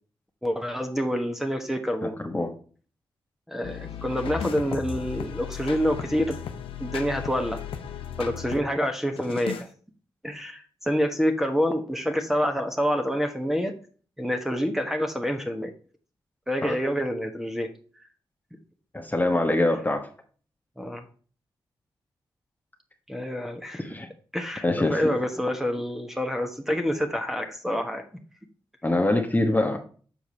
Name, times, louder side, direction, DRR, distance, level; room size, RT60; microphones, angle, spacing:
voice 1, 0.4-2.2 3.5-6.4 6.8-7.6 8.2-9.7 10.2-13.7 14.2-15.7 16.5-17.7 20.8-21.1 23.1-24.0 24.3-28.0, equal, 5° right, 5 dB, 1.3 m, -27 dB
voice 2, 2.0-2.5 16.6-16.7 18.9-20.1 23.9-24.1 24.6-25.1 28.8-29.8, left 2 dB, 20° left, 3 dB, 1.2 m, -24 dB
sound 1, 3.6-8.7 9.2-9.7, left 8 dB, 85° left, 0.6 m, -36 dB
7.0 x 4.6 x 4.3 m, 0.41 s
cardioid pair, 55°, 9 cm